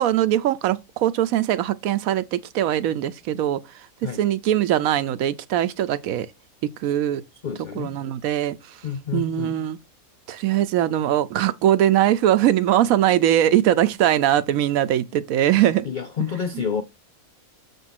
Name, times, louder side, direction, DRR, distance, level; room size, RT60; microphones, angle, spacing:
voice 1, 0.0-3.6 4.0-6.3 6.8-7.2 7.8-8.6 9.1-9.8 10.3-15.9, right 11 dB, 75° right, 1.0 m, -21 dB
voice 2, 7.4-7.9 8.8-9.6 15.8-16.8, left 7 dB, 80° left, 0.4 m, -28 dB
6.9 x 3.6 x 5.8 m
omnidirectional pair, 1.6 m